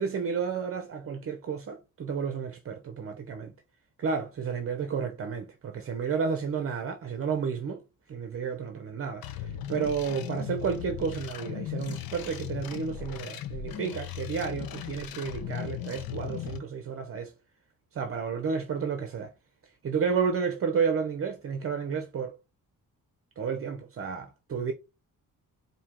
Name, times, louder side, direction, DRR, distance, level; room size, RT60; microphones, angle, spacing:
voice 1, 0.0-3.5 4.0-7.8 8.1-17.3 17.9-19.3 19.8-22.3 23.4-24.7, right 6 dB, 40° right, 0.6 m, -31 dB
sound 1, 9.2-16.6, left 12 dB, 75° left, 0.7 m, -37 dB
4.4 x 2.8 x 3.5 m
wide cardioid pair, 145°, 36 cm